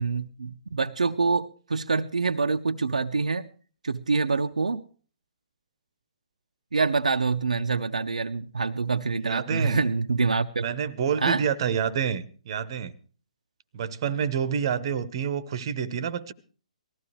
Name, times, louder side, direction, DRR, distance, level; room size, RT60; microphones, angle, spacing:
voice 1, 0.0-3.5 3.8-4.8 6.7-10.7 11.2-11.4, right 4 dB, 70° right, 7 dB, 0.6 m, -26 dB
voice 2, 9.2-9.8 10.6-12.9 13.7-16.3, right 7 dB, 40° right, 17 dB, 0.8 m, -28 dB
19.0 x 14.5 x 3.2 m, 0.41 s
figure-of-eight pair, 130°, 4 cm